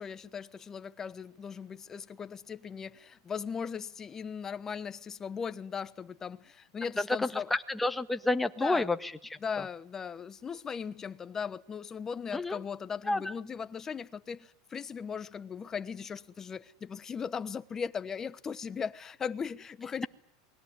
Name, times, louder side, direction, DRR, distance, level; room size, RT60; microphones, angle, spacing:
voice 1, 0.0-7.5 8.6-8.9 9.4-20.1, left 6 dB, 20° left, 1.2 m, -38 dB
voice 2, 7.5-9.1 12.3-12.6 13.1-13.2, left 2 dB, 5° left, 1.5 m, -29 dB
28.5 x 21.0 x 9.6 m
supercardioid pair, 130°, 2 cm